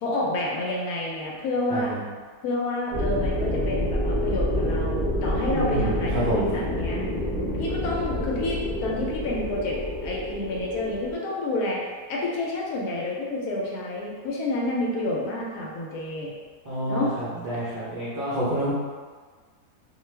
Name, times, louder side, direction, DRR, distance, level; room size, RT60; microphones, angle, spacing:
voice 1, 0.0-1.9 2.4-7.0 7.6-11.8 12.1-16.3 16.9-17.2, left 2 dB, 70° left, -3 dB, 1.0 m, -29 dB
sound 1, 2.9-11.1, left 1 dB, 45° left, 0.8 m, -28 dB
voice 2, 5.5-5.9 6.2-6.4 16.7-18.7, equal, 65° right, -10 dB, 0.5 m, -28 dB
2.5 x 2.3 x 3.1 m, 1.5 s
omnidirectional pair, 1.7 m